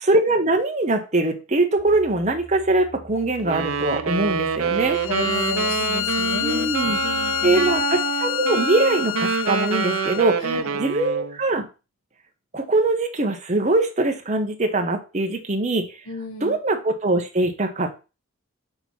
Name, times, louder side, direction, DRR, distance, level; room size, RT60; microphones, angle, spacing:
voice 1, 0.0-5.0 6.4-7.0 7.4-10.5 10.8-11.6 12.5-15.8 16.4-18.0, right 2 dB, 30° right, 4 dB, 0.9 m, -22 dB
sound 1, 1.8-7.8, equal, 40° left, 1.2 m, -45 dB
Wind instrument woodwind instrument, 3.4-11.4, right 6 dB, 70° right, 0.6 m, -26 dB
Bowed string instrument, 4.9-10.3, left 14 dB, 60° left, 0.5 m, -28 dB
voice 2, 5.1-6.7 7.0-7.7 10.4-10.8 16.1-16.6, left 1 dB, 85° left, 2 dB, 1.1 m, -32 dB
6.8 x 3.1 x 5.5 m, 0.30 s
head